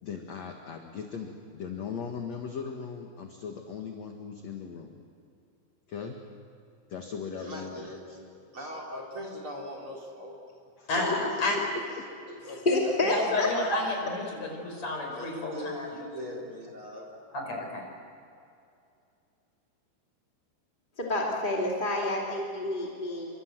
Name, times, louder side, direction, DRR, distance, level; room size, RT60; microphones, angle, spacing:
voice 1, 0.0-5.0 5.9-6.2 6.9-8.2 10.8-10.9, left 6 dB, 55° left, 3 dB, 2.1 m, -39 dB
voice 2, 7.4-10.4 11.3-14.0 15.1-17.2, equal, 30° right, 0 dB, 4.4 m, -42 dB
voice 3, 10.9-11.6 12.7-12.8 13.1-15.9 16.2-16.3 17.3-17.8, left 2 dB, 35° left, 1 dB, 6.0 m, -31 dB
voice 4, 12.6-13.8 21.0-23.3, left 1 dB, 15° left, -3 dB, 1.8 m, -28 dB
29.5 x 25.0 x 7.8 m, 2.5 s
omnidirectional pair, 5.3 m